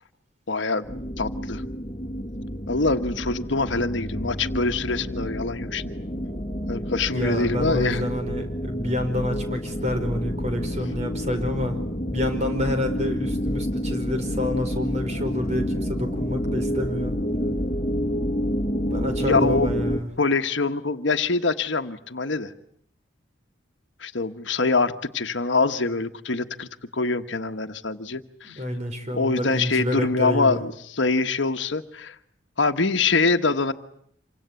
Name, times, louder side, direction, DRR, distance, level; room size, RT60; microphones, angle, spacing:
voice 1, 0.5-0.9 1.2-1.6 2.7-5.9 6.7-8.1 19.2-19.7 20.2-22.5 24.0-28.6 29.1-32.2 32.6-33.7, left 3 dB, 70° left, 8 dB, 1.4 m, -24 dB
sound 1, 0.8-20.0, equal, 30° left, 2.1 m, -29 dB
voice 2, 7.1-11.8 12.1-17.2 18.9-20.1 28.4-30.6, left 1 dB, 35° right, 6 dB, 5.1 m, -28 dB
27.5 x 25.0 x 8.3 m, 0.67 s
head